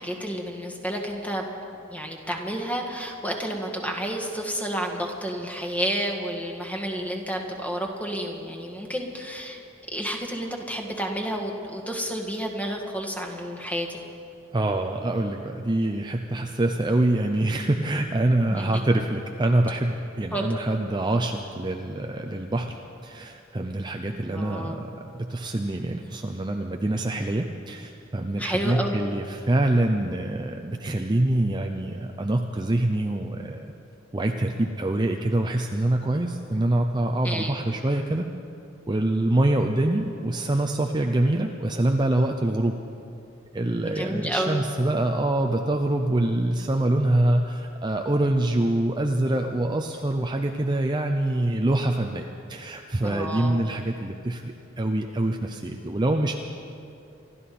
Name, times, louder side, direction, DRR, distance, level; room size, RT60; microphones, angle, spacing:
voice 1, 0.0-1.5 1.9-9.6 9.9-14.0 18.4-18.8 20.3-20.4 24.3-24.8 28.4-29.0 37.2-37.5 43.8-44.6 53.0-53.6, equal, 10° left, 1 dB, 1.7 m, -30 dB
voice 2, 14.5-33.7 34.1-38.3 38.9-42.8 43.5-56.4, right 1 dB, 25° right, 3 dB, 0.6 m, -25 dB
27.0 x 12.5 x 4.3 m, 2.6 s
head